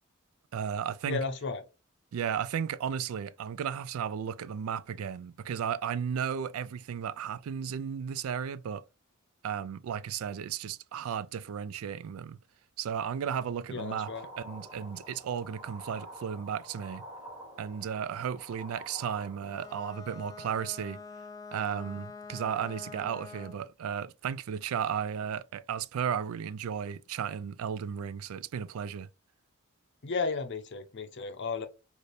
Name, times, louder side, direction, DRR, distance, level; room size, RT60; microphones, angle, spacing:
voice 1, 0.5-1.2 2.1-8.8 9.4-12.4 12.8-14.1 14.4-17.0 17.6-21.0 21.5-29.1, right 8 dB, 80° right, 0.3 m, -34 dB
voice 2, 1.1-1.6 13.7-14.3 30.0-31.7, left 4 dB, 60° left, 0.7 m, -34 dB
sound 1, 13.8-19.9, equal, 10° right, 1.6 m, -48 dB
Bowed string instrument, 19.4-23.7, left 4 dB, 15° left, 0.4 m, -46 dB
3.3 x 2.5 x 4.1 m
head